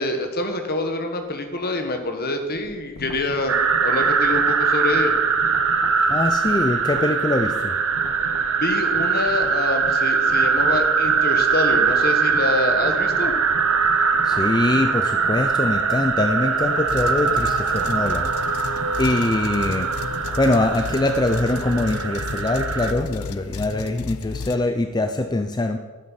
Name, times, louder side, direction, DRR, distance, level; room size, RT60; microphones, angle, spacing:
voice 1, 0.0-3.5 3.8-5.1 8.6-13.3, left 2 dB, 45° left, 5 dB, 1.5 m, -26 dB
sound 1, 2.5-7.7 7.9-21.9, left 1 dB, 90° left, 1.0 m, -40 dB
sound 2, 3.5-22.9, right 5 dB, 65° right, 1.0 m, -22 dB
voice 2, 6.1-7.8 14.2-19.9 20.4-25.8, left 2 dB, 20° left, 7 dB, 0.5 m, -23 dB
sound 3, 16.9-24.6, left 4 dB, 70° left, 0.5 m, -34 dB
11.0 x 9.6 x 5.7 m, 1.4 s
head